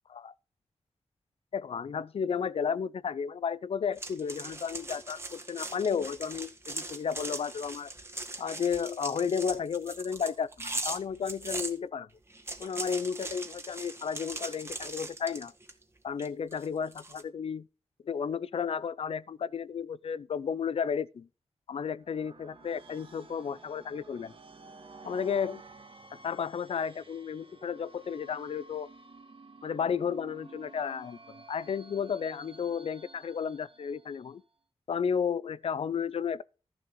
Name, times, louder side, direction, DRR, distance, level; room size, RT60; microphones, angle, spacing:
voice 1, 1.5-7.9 8.4-12.1 12.6-15.5 16.0-17.7 18.0-21.3 21.7-24.3 25.0-25.6 26.1-28.9 29.6-34.4 34.9-36.4, left 6 dB, 60° left, 0.5 m, -33 dB
sound 1, 4.0-11.7 12.3-15.8 16.2-17.2, right 2 dB, 20° right, 1.8 m, -40 dB
sound 2, 22.0-34.5, right 3 dB, 55° right, 1.9 m, -52 dB
14.0 x 6.9 x 3.8 m
wide cardioid pair, 75°, 11 cm